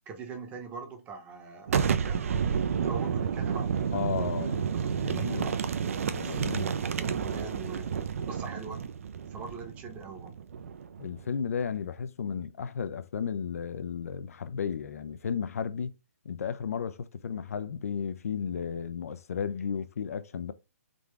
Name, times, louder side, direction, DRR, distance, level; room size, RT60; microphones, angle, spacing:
voice 1, 0.1-2.3 2.8-7.9 8.3-8.8 9.3-10.3, right 4 dB, 20° right, 0.8 m, -43 dB
Boom, 1.7-11.2, right 7 dB, 65° right, 0.5 m, -30 dB
voice 2, 3.9-5.5 6.1-6.8 11.0-15.9 16.2-20.5, left 7 dB, 70° left, 0.4 m, -34 dB
3.7 x 2.4 x 3.2 m
hypercardioid pair, 145°, 8 cm